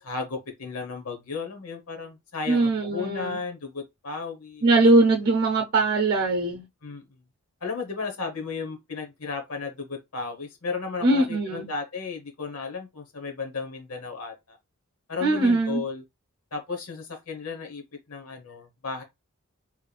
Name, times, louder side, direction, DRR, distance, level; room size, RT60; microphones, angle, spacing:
voice 1, 0.0-4.7 6.8-7.0 7.6-14.6 15.1-16.0 16.5-19.0, left 4 dB, 75° left, 1.1 m, -34 dB
voice 2, 2.5-3.4 4.6-6.6 11.0-11.7 15.2-15.8, right 2 dB, 45° right, 0.7 m, -21 dB
3.4 x 3.2 x 2.3 m
head